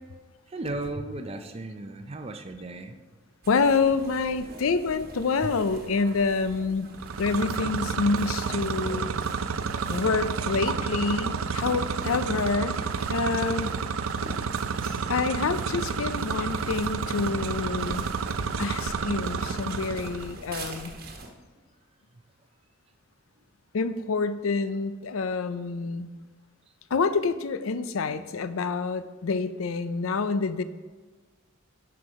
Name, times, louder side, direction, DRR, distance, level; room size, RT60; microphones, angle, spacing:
voice 1, 0.5-3.0 5.4-5.5 14.8-15.1, right 2 dB, 30° right, 6 dB, 0.5 m, -35 dB
sound 1, 3.4-21.3, right 2 dB, 45° right, 1.2 m, -44 dB
voice 2, 3.5-6.9 7.2-9.1 9.9-12.8 13.1-13.7 15.1-18.1 18.6-20.9 23.7-26.1 26.9-30.6, left 4 dB, 85° left, 13 dB, 0.5 m, -27 dB
sound 2, 6.9-20.3, right 5 dB, 85° right, 0.5 m, -30 dB
11.0 x 5.9 x 4.8 m, 1.4 s
head